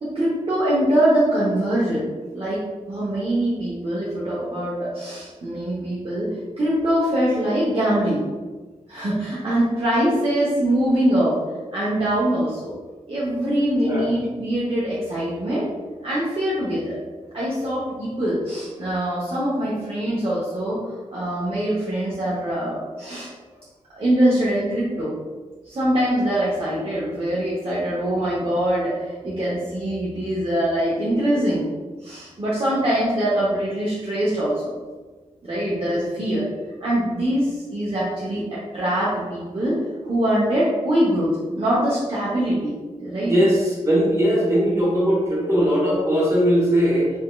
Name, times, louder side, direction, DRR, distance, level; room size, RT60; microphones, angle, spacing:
voice 1, 0.0-8.3 8.9-11.4 11.7-12.7 13.1-15.7 16.0-17.0 17.3-23.3 24.0-25.2 25.6-31.7 32.0-34.7 35.4-36.5 36.8-43.3, right 1 dB, 45° right, -8 dB, 0.8 m, -23 dB
voice 2, 43.2-47.1, equal, 20° right, -6 dB, 1.5 m, -19 dB
3.5 x 2.9 x 2.2 m, 1.4 s
cardioid pair, 55°, 13 cm